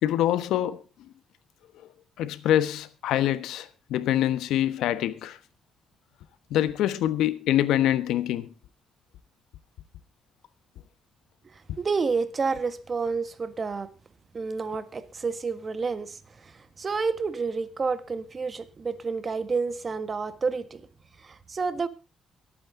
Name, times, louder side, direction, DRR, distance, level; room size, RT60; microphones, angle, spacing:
voice 1, 0.0-0.8 2.2-5.4 6.5-8.5, left 12 dB, 85° left, 1.2 m, -25 dB
voice 2, 11.4-13.9 14.3-20.8 21.2-21.9, right 4 dB, 35° right, 1.5 m, -30 dB
23.0 x 8.9 x 3.7 m
cardioid pair, 90°, 0 cm